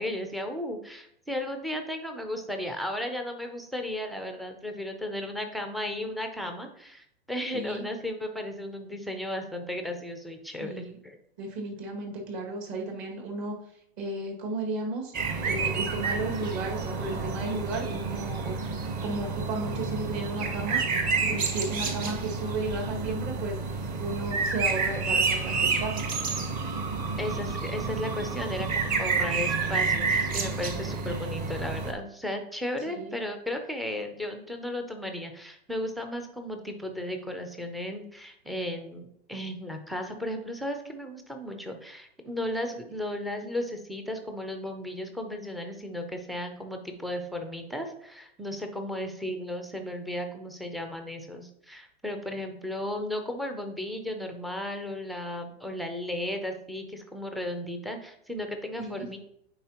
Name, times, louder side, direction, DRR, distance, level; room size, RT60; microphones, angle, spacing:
voice 1, 0.0-11.2 27.2-59.2, left 1 dB, ahead, 4 dB, 0.3 m, -35 dB
voice 2, 7.5-7.8 10.6-11.0 11.4-13.6 14.0-15.1 15.4-18.5 19.0-20.8 21.1-26.1 30.8-31.2 32.9-33.2 58.8-59.0, right 2 dB, 50° right, 0 dB, 2.0 m, -34 dB
sound 1, 15.1-31.9, right 4 dB, 25° right, 0.9 m, -29 dB
9.2 x 4.1 x 2.9 m, 0.74 s
hypercardioid pair, 135°, 31 cm